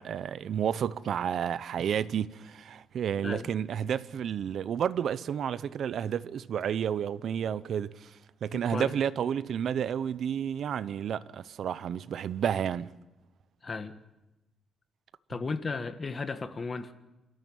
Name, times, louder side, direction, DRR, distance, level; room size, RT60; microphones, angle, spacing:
voice 1, 0.0-8.1 8.4-12.9, right 8 dB, 60° right, 0.7 m, -31 dB
voice 2, 8.5-8.9 13.6-13.9 15.3-16.9, left 4 dB, 30° left, 1.5 m, -35 dB
28.0 x 13.5 x 8.8 m
cardioid pair, 130°, 0 cm